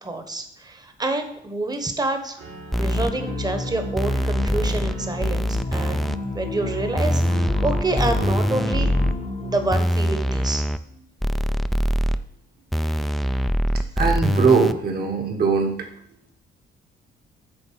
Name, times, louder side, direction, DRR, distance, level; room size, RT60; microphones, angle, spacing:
voice 1, 0.0-2.4 2.7-6.0 6.3-8.9 9.4-10.7, right 2 dB, 20° right, 7 dB, 1.1 m, -27 dB
Piano, 2.4-9.2, right 3 dB, 75° right, 3.0 m, -41 dB
sound 1, 2.7-3.1 4.0-4.9 5.2-6.2 7.0-9.1 9.7-10.8 11.2-12.2 12.7-14.7, equal, ahead, 0.3 m, -23 dB
sound 2, 2.9-9.8, left 3 dB, 35° left, 0.8 m, -31 dB
voice 2, 14.0-15.7, right 5 dB, 50° right, 3 dB, 1.6 m, -20 dB
7.9 x 3.5 x 5.7 m, 0.72 s
cardioid pair, 90°, 20 cm